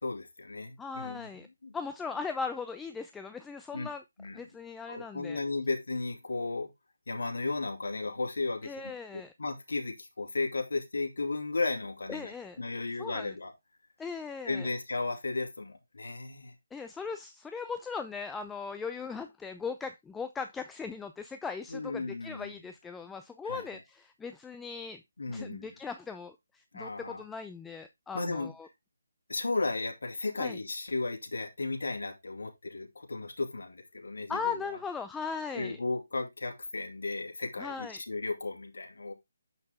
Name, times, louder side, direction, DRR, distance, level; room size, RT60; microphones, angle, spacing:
voice 1, 0.0-1.7 3.7-3.9 4.2-4.4 4.9-6.7 7.1-13.5 14.4-16.5 21.7-22.6 23.4-23.6 25.2-25.7 26.7-27.2 28.1-28.5 29.3-34.8 35.5-39.1, left 3 dB, 80° left, 2.5 m, -35 dB
voice 2, 0.8-1.5 1.7-4.0 4.3-5.4 8.6-9.3 12.1-12.6 13.0-13.3 14.0-14.7 16.7-25.0 25.3-28.7 30.4-30.6 34.3-35.8 37.6-38.0, left 5 dB, 5° left, 0.4 m, -38 dB
7.7 x 5.7 x 3.5 m
hypercardioid pair, 160°, 0 cm